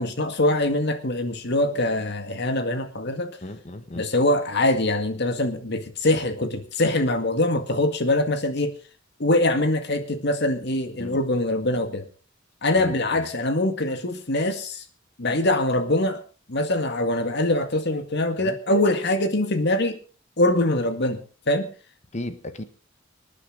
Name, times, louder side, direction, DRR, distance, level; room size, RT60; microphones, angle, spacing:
voice 1, 0.0-3.4 3.9-8.8 9.2-12.1 12.6-14.8 15.2-16.2 16.5-20.0 20.4-21.2 21.5-21.7, left 1 dB, 60° left, 7 dB, 2.0 m, -23 dB
voice 2, 3.4-4.1 11.0-11.2 12.8-13.3 18.4-18.6 22.1-22.6, left 1 dB, 35° left, 10 dB, 1.4 m, -35 dB
25.5 x 9.7 x 4.0 m, 0.36 s
head